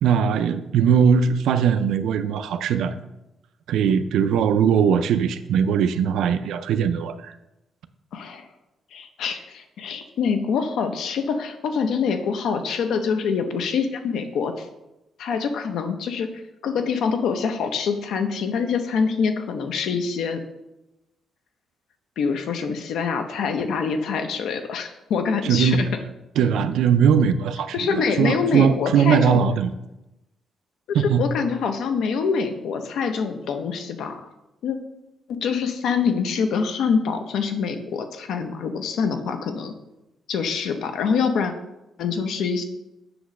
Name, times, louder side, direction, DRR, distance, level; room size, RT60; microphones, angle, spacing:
voice 1, 0.0-3.0 3.7-7.3 25.4-25.8 26.4-29.7 30.9-31.2, right 7 dB, 80° right, 11 dB, 0.4 m, -20 dB
voice 2, 8.1-8.5 8.9-14.7 15.2-20.4 22.2-25.9 27.7-29.4 30.9-34.3 34.6-34.8 35.3-39.7 40.3-41.5 42.0-42.6, left 5 dB, 70° left, 7 dB, 0.7 m, -25 dB
7.8 x 3.1 x 6.2 m, 0.94 s
cardioid pair, 165°, 0 cm